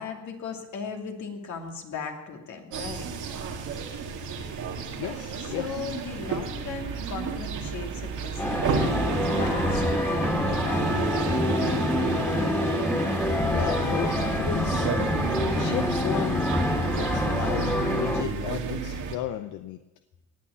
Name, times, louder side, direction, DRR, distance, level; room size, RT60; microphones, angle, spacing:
voice 1, 0.0-3.1 5.4-12.6, left 5 dB, 70° left, 3 dB, 2.6 m, -37 dB
sound 1, 2.7-19.2, right 6 dB, 80° right, 2.0 m, -32 dB
voice 2, 4.9-5.8 13.5-14.9 15.5-16.5 17.0-19.8, left 11 dB, 85° left, 9 dB, 0.8 m, -34 dB
sound 2, 8.4-18.2, left 1 dB, 5° left, 2.3 m, -26 dB
18.5 x 8.7 x 6.9 m, 1.1 s
cardioid pair, 90°, 30 cm